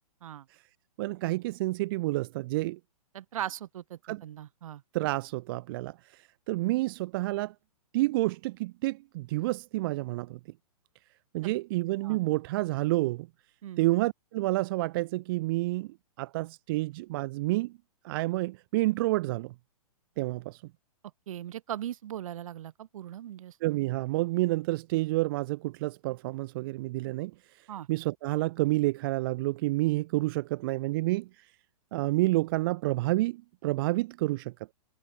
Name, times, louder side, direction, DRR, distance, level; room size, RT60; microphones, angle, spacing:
voice 1, 1.0-2.8 4.1-4.2 4.9-7.5 7.9-10.4 11.3-13.3 13.8-17.7 18.0-19.5 20.2-20.6 23.6-27.3 27.6-31.5 31.9-34.7, right 19 dB, 35° right, 0.4 m, -29 dB
voice 2, 3.1-4.8 12.0-12.2 13.6-13.8 21.3-23.6 27.7-27.9, right 11 dB, 60° right, 2.0 m, -39 dB
hypercardioid pair, 125°, 20 cm